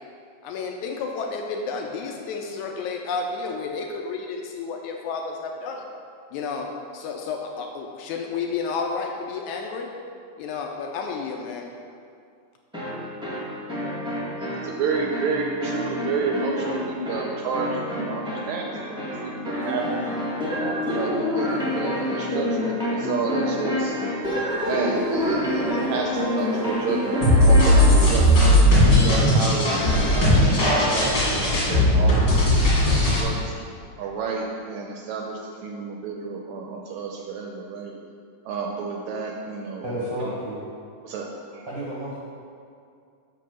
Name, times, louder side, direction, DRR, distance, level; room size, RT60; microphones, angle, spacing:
voice 1, 0.4-5.8 6.3-6.7 6.9-9.9 10.4-11.7, left 4 dB, 80° left, 2 dB, 1.8 m, -31 dB
sound 1, 12.7-28.2, left 1 dB, 5° right, 0.6 m, -28 dB
voice 2, 14.4-20.2 20.9-24.0 24.7-29.7 30.2-33.6 34.0-37.9 38.5-39.9 41.0-41.3 41.5-41.6, right 4 dB, 80° right, 0 dB, 1.7 m, -30 dB
sound 2, 27.2-33.2, left 1 dB, 35° left, 2.3 m, -17 dB
voice 3, 39.8-40.6 41.7-42.2, right 1 dB, 60° right, -7 dB, 1.2 m, -31 dB
5.9 x 5.4 x 6.3 m, 2.3 s
omnidirectional pair, 3.7 m